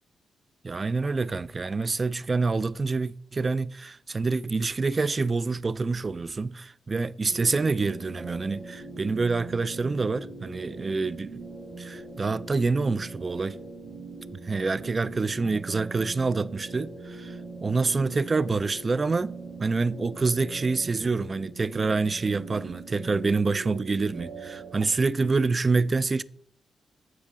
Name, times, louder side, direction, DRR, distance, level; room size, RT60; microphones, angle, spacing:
voice 1, 0.6-11.4 11.8-13.6 14.3-19.3 19.6-26.2, right 4 dB, 35° right, 0.3 m, -27 dB
sound 1, 7.3-24.9, right 3 dB, 65° right, 2.3 m, -41 dB
10.5 x 4.8 x 3.7 m
cardioid pair, 85°, 0 cm